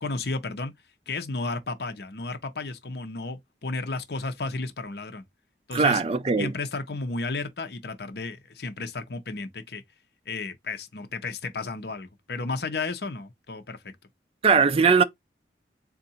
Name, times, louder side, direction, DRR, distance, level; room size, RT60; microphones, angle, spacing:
voice 1, 0.0-0.7 1.1-5.2 5.7-6.0 6.4-9.8 10.3-13.9, left 3 dB, 60° left, 0.8 m, -33 dB
voice 2, 5.7-6.5 14.4-15.0, right 5 dB, 30° right, 0.4 m, -20 dB
3.8 x 2.5 x 4.2 m
head